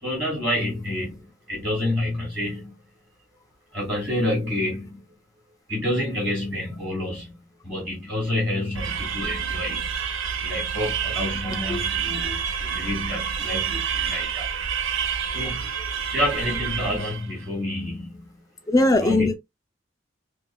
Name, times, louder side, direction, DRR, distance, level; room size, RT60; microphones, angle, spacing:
voice 1, 0.0-2.7 3.7-5.0 5.7-7.3 7.6-9.9 10.4-14.6 15.3-15.7 16.1-18.2 19.0-19.3, left 1 dB, 10° right, 2.2 m, -28 dB
sound 1, 8.7-17.3, right 7 dB, 75° right, 0.6 m, -28 dB
voice 2, 18.7-19.3, left 2 dB, 15° left, 0.4 m, -19 dB
4.5 x 2.5 x 2.3 m
head